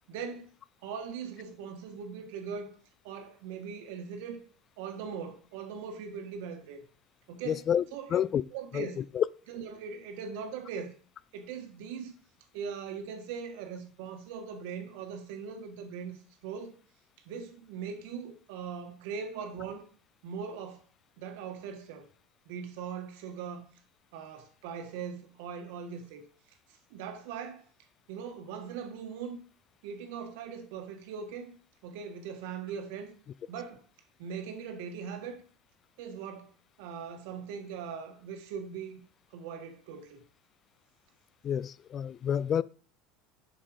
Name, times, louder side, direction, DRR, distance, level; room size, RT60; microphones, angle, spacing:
voice 1, 0.1-0.5 0.8-2.7 3.0-4.4 4.8-6.8 7.3-7.6 7.9-8.2 8.5-9.1 9.5-10.9 11.3-12.1 12.5-16.2 16.4-16.8 17.2-19.9 20.2-20.8 21.2-22.1 22.4-23.7 24.1-26.2 26.9-27.6 28.1-29.4 29.8-31.6 31.8-33.1 33.5-33.8 34.2-35.4 36.0-36.5 36.8-39.0 39.3-40.2, right 6 dB, 75° right, 1.7 m, -40 dB
voice 2, 7.5-7.8 8.1-8.4 8.7-8.9 9.1-9.2 41.4-42.6, left 9 dB, 35° left, 0.4 m, -28 dB
7.3 x 6.6 x 5.1 m
supercardioid pair, 125°, 0 cm